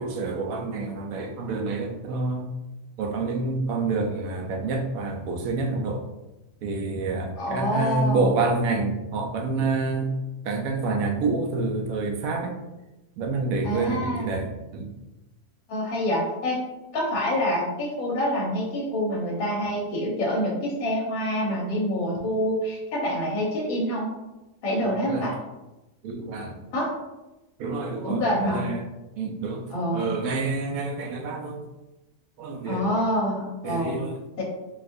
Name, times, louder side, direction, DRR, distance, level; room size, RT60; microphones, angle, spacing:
voice 1, 0.0-2.5 3.0-6.0 6.6-10.1 10.4-12.6 13.2-14.9 24.8-25.3 26.0-26.6 27.6-28.9 29.2-31.7 32.4-32.9 33.6-34.2, right 3 dB, 70° right, 2 dB, 0.9 m, -28 dB
voice 2, 7.4-8.3 13.6-14.3 15.7-16.6 16.9-24.1 24.6-25.3 26.7-26.9 28.0-28.7 29.7-30.1 32.7-34.0 34.4-34.5, equal, 60° left, -4 dB, 1.4 m, -26 dB
4.1 x 2.4 x 2.5 m, 1.0 s
omnidirectional pair, 1.7 m